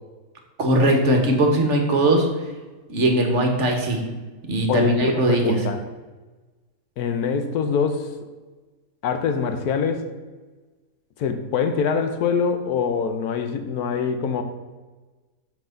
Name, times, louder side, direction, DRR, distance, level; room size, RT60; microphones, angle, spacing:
voice 1, 0.6-2.3 2.9-4.0 4.5-5.5, right 1 dB, 50° right, 3 dB, 1.3 m, -19 dB
voice 2, 4.7-5.8 7.0-8.1 9.0-10.1 11.2-14.4, left 6 dB, 75° left, 8 dB, 1.2 m, -24 dB
5.8 x 5.2 x 6.6 m, 1.3 s
omnidirectional pair, 1.7 m